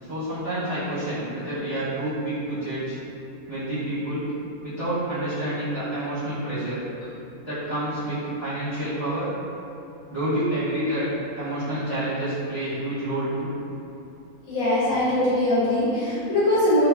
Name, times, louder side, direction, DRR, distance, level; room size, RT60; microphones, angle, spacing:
voice 1, 0.0-3.0 3.5-4.2 4.6-7.1 7.4-9.3 10.1-11.0 11.4-13.5, right 1 dB, 30° right, -17 dB, 0.7 m, -28 dB
voice 2, 14.5-16.9, left 1 dB, 70° left, -10 dB, 1.1 m, -21 dB
2.6 x 2.4 x 2.2 m, 2.8 s
omnidirectional pair, 1.6 m